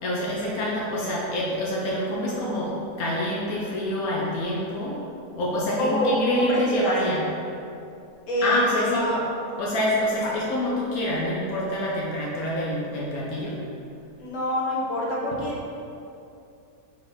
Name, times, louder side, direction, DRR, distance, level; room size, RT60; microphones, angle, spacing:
voice 1, 0.0-5.0 5.3-7.3 8.4-9.2 9.6-13.6, equal, 80° left, -5 dB, 1.3 m, -26 dB
voice 2, 5.8-6.9 8.3-9.2 10.2-10.3 14.2-15.5, left 1 dB, 60° left, -4 dB, 1.4 m, -26 dB
5.0 x 4.6 x 4.3 m, 2.7 s
omnidirectional pair, 1.5 m